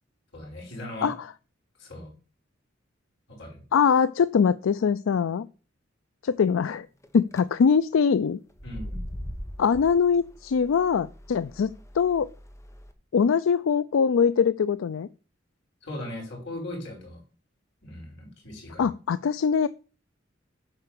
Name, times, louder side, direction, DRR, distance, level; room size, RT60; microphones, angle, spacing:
voice 1, 0.3-1.1 1.8-2.1 3.3-3.6 8.6-9.0 15.8-17.2 17.8-18.9, left 1 dB, 65° left, 0 dB, 5.5 m, -38 dB
voice 2, 3.7-5.5 6.2-6.9 7.1-8.4 9.6-11.7 11.9-12.3 13.1-15.1 18.8-19.7, left 6 dB, 90° left, 16 dB, 0.4 m, -22 dB
sound 1, 7.0-7.4 8.5-12.9, equal, 15° left, 1.0 m, -41 dB
9.0 x 4.7 x 6.8 m, 0.36 s
head